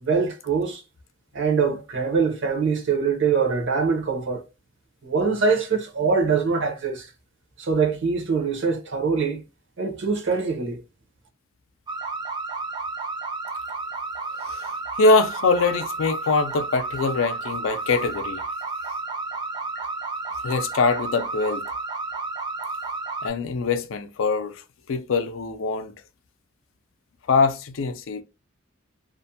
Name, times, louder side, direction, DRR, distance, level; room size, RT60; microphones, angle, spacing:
voice 1, 0.0-0.8 1.3-4.4 5.0-7.1 7.6-9.4 9.8-10.8, right 5 dB, 65° right, 0.8 m, -23 dB
sound 1, 11.9-23.3, right 3 dB, 20° right, 0.4 m, -31 dB
voice 2, 15.0-18.4 20.4-21.7 23.2-24.6 24.9-25.9 27.3-28.2, left 4 dB, 70° left, 0.4 m, -23 dB
2.5 x 2.1 x 2.6 m
head